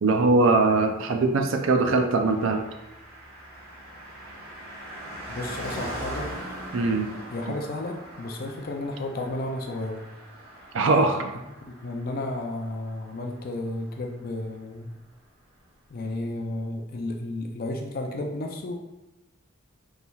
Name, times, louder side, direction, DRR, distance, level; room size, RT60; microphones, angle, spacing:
voice 1, 0.0-2.6 6.7-7.1 10.7-11.3, right 3 dB, 65° right, 5 dB, 0.4 m, -21 dB
Car passing by, 2.1-14.0 14.2-14.3, right 1 dB, 45° right, 1.3 m, -41 dB
voice 2, 5.3-6.3 7.3-10.0 11.6-15.0 15.9-18.8, left 2 dB, 45° left, 2 dB, 0.4 m, -32 dB
5.4 x 3.3 x 2.3 m, 0.98 s
head